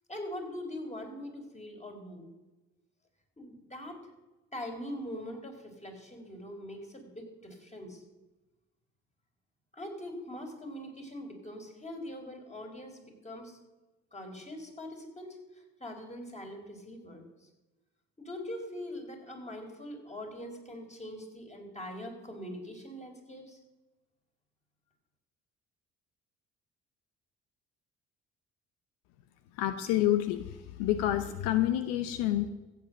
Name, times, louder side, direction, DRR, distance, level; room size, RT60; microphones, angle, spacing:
voice 1, 0.1-2.3 3.4-4.0 4.5-8.0 9.7-13.6 14.1-17.5 18.2-23.6, left 1 dB, 20° left, 2 dB, 4.3 m, -42 dB
voice 2, 29.5-32.5, left 13 dB, 80° left, 10 dB, 0.8 m, -28 dB
15.0 x 7.9 x 6.6 m, 1.1 s
hypercardioid pair, 55°, 33 cm